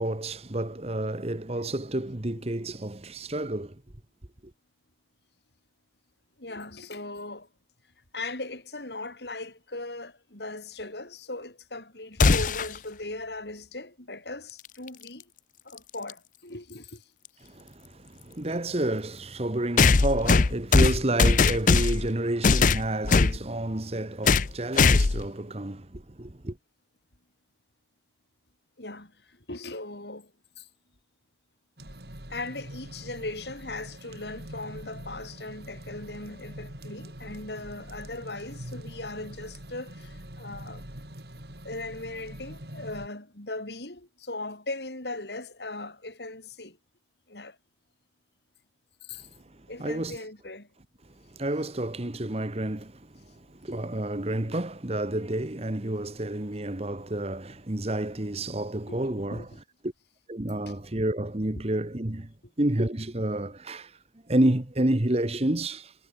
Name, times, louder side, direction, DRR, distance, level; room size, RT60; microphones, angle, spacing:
voice 1, 0.0-3.8 17.4-26.6 49.4-50.2 51.2-59.5 59.8-59.9 60.3-64.0 64.3-65.9, right 1 dB, 35° right, 1.4 m, -30 dB
voice 2, 6.4-7.5 8.1-15.3 15.6-17.1 17.4-17.5 28.8-30.7 32.3-40.8 41.6-46.8 47.3-47.6 49.0-49.3 49.7-50.7 58.9-59.5 60.6-60.7, left 2 dB, 70° left, 4.8 m, -39 dB
sound 1, 12.2-12.8 14.9-15.0 16.1-16.2 19.8-22.1 22.4-23.4 24.3-24.5 24.8-25.3, left 4 dB, 50° left, 0.6 m, -20 dB
sound 2, 31.8-43.1, right 1 dB, 60° right, 5.2 m, -44 dB
head